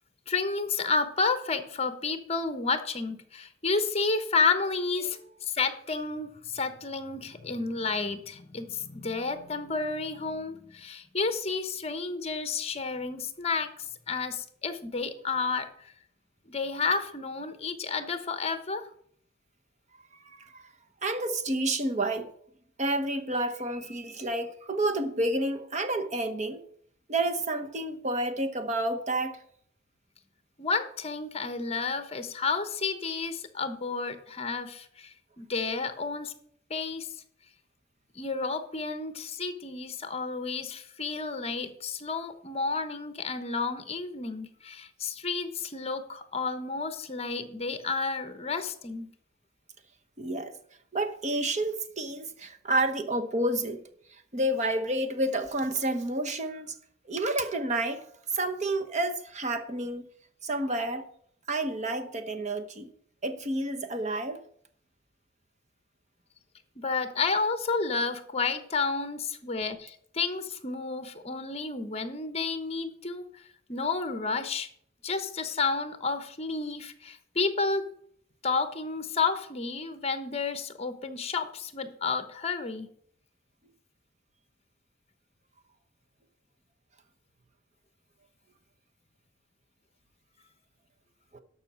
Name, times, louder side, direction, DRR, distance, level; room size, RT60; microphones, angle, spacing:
voice 1, 0.3-5.2 5.5-15.9 16.5-18.8 30.6-36.3 36.7-37.1 38.1-49.1 66.8-73.4 73.7-74.7 75.0-77.9 78.4-82.9, left 4 dB, 30° left, 1.0 m, -31 dB
voice 2, 20.3-20.6 21.0-22.3 22.8-26.6 27.1-29.4 50.2-50.5 50.9-53.8 54.3-56.7 57.1-58.0 58.3-60.1 60.4-61.1 61.5-62.9 63.2-64.4 91.3-91.4, right 1 dB, 35° right, 1.1 m, -29 dB
12.5 x 5.7 x 6.2 m
head